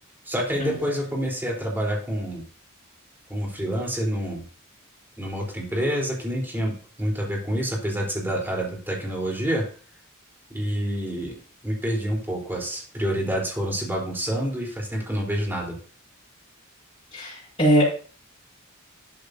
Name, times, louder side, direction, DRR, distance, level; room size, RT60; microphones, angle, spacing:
voice 1, 0.3-2.4 3.3-4.4 5.2-9.6 10.5-11.4 11.6-15.8, equal, 10° right, -1 dB, 4.0 m, -27 dB
voice 2, 17.1-18.0, equal, 25° left, -6 dB, 6.1 m, -21 dB
12.5 x 10.5 x 2.8 m, 0.40 s
head